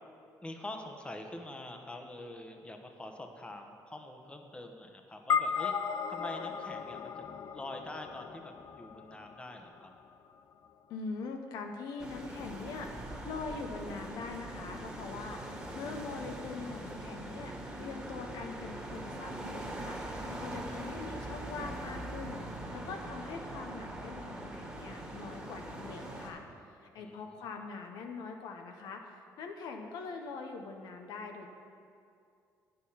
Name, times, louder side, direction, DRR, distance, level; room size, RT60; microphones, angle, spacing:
voice 1, 0.4-5.7 6.1-9.9 20.3-20.8 27.0-27.2, left 1 dB, 15° left, 4 dB, 1.0 m, -45 dB
sound 1, 5.3-9.9, left 6 dB, 55° left, 0.4 m, -35 dB
voice 2, 10.9-20.0 20.3-22.4 22.7-26.4 26.8-31.5, left 4 dB, 80° left, 4 dB, 0.9 m, -43 dB
sound 2, 12.0-26.3, right 1 dB, 15° right, 1.8 m, -42 dB
9.0 x 6.7 x 5.7 m, 2.4 s
cardioid pair, 90°, 7 cm